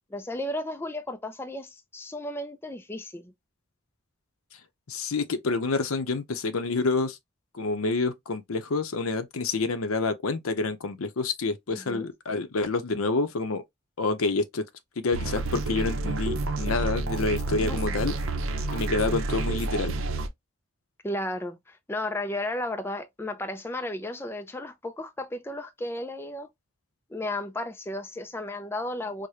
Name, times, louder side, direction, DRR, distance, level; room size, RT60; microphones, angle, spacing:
voice 1, 0.1-3.3 11.7-12.1 17.6-17.8 21.0-26.5 27.1-29.3, left 1 dB, 10° left, 0.3 m, -34 dB
voice 2, 4.9-7.2 7.5-13.6 14.0-14.7 15.0-18.2 18.7-19.9, left 3 dB, 90° left, 0.6 m, -28 dB
sound 1, 15.1-20.3, right 2 dB, 70° right, 0.6 m, -29 dB
4.8 x 2.1 x 2.7 m
head